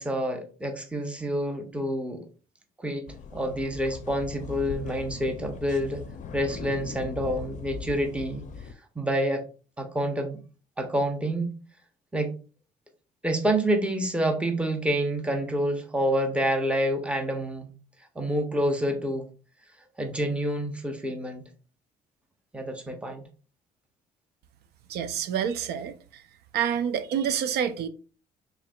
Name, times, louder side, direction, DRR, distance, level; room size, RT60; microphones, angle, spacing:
voice 1, 0.0-2.3 2.8-6.0 6.3-8.4 8.9-9.4 9.8-10.4 10.8-11.6 12.1-12.3 13.2-17.7 18.2-19.3 20.0-21.5 22.5-23.2, equal, 5° right, 0.7 m, -28 dB
sound 1, 3.1-8.7, left 6 dB, 45° left, 0.5 m, -39 dB
voice 2, 24.9-26.2 26.5-27.9, right 8 dB, 70° right, 0.5 m, -28 dB
4.6 x 3.3 x 2.3 m
cardioid pair, 110°, 17 cm